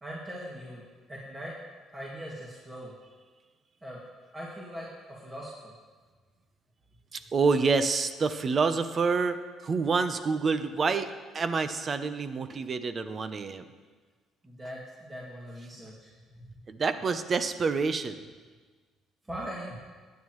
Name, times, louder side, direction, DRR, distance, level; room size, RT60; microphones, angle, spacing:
voice 1, 0.0-1.5 1.9-2.9 3.8-4.0 4.3-5.7 14.4-16.5 19.2-19.8, equal, 20° right, -5 dB, 2.3 m, -41 dB
voice 2, 7.1-11.1 11.3-13.6 16.7-18.2, right 4 dB, 40° right, 11 dB, 0.8 m, -27 dB
15.5 x 9.4 x 3.2 m, 1.4 s
cardioid pair, 85°, 0 cm